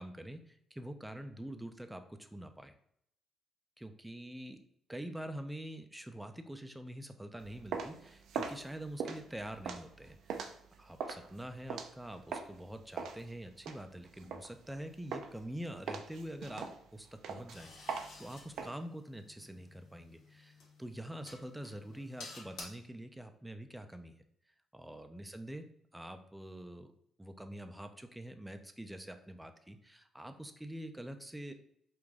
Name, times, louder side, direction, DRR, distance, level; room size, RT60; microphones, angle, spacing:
voice 1, 0.0-2.7 3.8-4.6 4.9-16.7 16.9-24.2 24.7-25.7 25.9-26.9 27.2-31.5, right 1 dB, 5° right, 7 dB, 0.5 m, -45 dB
sound 1, 7.4-12.6 13.0-14.8 15.1-15.5 15.9-18.7, right 6 dB, 75° right, 0.5 m, -41 dB
sound 2, 17.5-22.6, left 3 dB, 90° left, 1.3 m, -53 dB
4.8 x 2.5 x 3.6 m, 0.70 s
cardioid pair, 90°, 0 cm